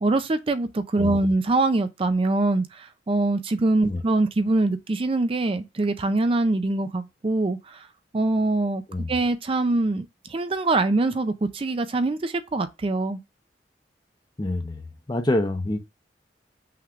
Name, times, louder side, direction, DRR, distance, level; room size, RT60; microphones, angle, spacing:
voice 1, 0.0-7.9 8.1-8.8 9.1-13.2, right 2 dB, 30° right, 0.4 m, -24 dB
voice 2, 14.4-14.8 15.1-15.8, left 1 dB, 25° left, 0.7 m, -26 dB
5.7 x 3.2 x 2.4 m
head